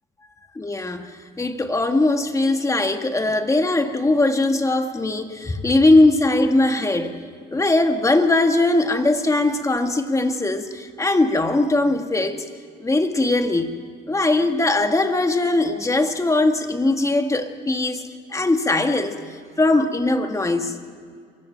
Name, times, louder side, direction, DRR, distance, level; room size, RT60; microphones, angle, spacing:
voice 1, 0.5-7.2 7.5-12.4 12.8-13.8 14.1-18.0 18.3-20.7, left 2 dB, 15° left, 6 dB, 1.8 m, -20 dB
27.5 x 23.0 x 4.6 m, 2.1 s
supercardioid pair, 95°, 19 cm